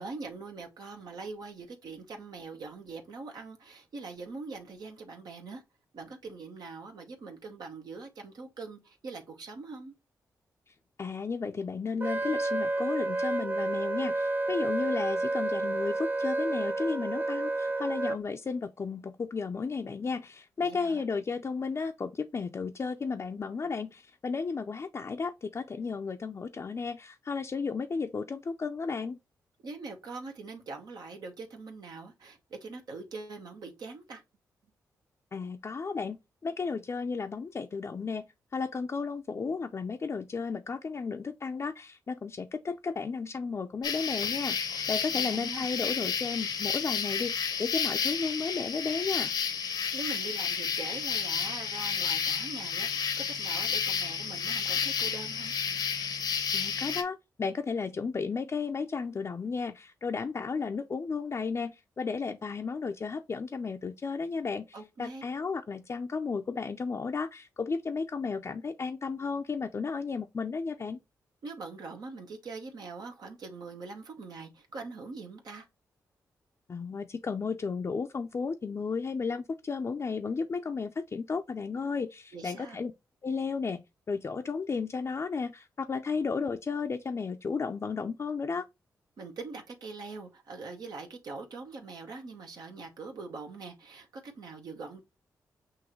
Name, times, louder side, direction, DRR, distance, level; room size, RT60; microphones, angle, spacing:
voice 1, 0.0-5.6 5.9-9.9 20.6-21.1 29.6-34.2 45.1-45.7 49.9-55.5 64.7-65.2 71.4-75.7 82.3-82.8 89.2-95.0, right 4 dB, 70° right, 1.1 m, -43 dB
voice 2, 11.0-29.2 35.3-36.2 36.4-38.2 38.5-49.3 56.5-71.0 76.7-82.9 83.2-83.8 84.1-88.7, left 5 dB, 40° left, 0.5 m, -33 dB
Wind instrument woodwind instrument, 12.0-18.2, right 2 dB, 30° right, 0.6 m, -30 dB
sound 1, 43.8-57.0, left 6 dB, 75° left, 0.8 m, -31 dB
6.2 x 2.6 x 3.0 m
cardioid pair, 55°, 7 cm